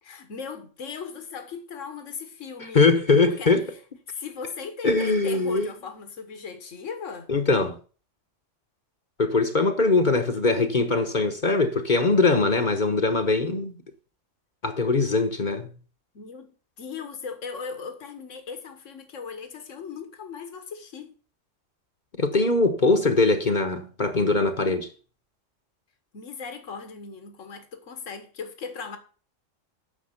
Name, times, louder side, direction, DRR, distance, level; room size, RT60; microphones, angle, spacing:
voice 1, 0.0-2.9 3.4-3.8 4.1-7.3 16.1-16.5 16.8-21.1 26.1-29.0, left 5 dB, 75° left, 1.8 m, -38 dB
voice 2, 2.7-3.6 4.8-5.7 7.3-7.8 9.2-13.8 14.6-15.7 22.2-24.9, left 3 dB, 40° left, 1.1 m, -22 dB
10.0 x 6.6 x 6.5 m
omnidirectional pair, 1.3 m